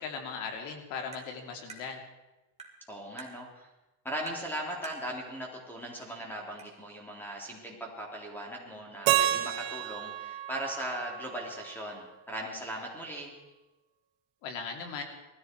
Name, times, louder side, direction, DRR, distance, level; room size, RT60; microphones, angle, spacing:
voice 1, 0.0-2.0 14.4-15.0, left 5 dB, 90° left, 4 dB, 2.9 m, -38 dB
Tap, 1.1-1.3 1.7-1.8 2.6-2.8 3.2-3.3 4.3-4.5 4.8-5.0 6.0-6.1 6.6-6.7, right 5 dB, 15° right, 2.2 m, -45 dB
voice 2, 2.9-3.7 4.0-13.3, right 1 dB, 5° left, -1 dB, 3.4 m, -39 dB
Keyboard (musical), 9.1-12.0, right 12 dB, 80° right, 1.1 m, -31 dB
19.0 x 14.0 x 4.6 m, 1.1 s
cardioid pair, 145°, 41 cm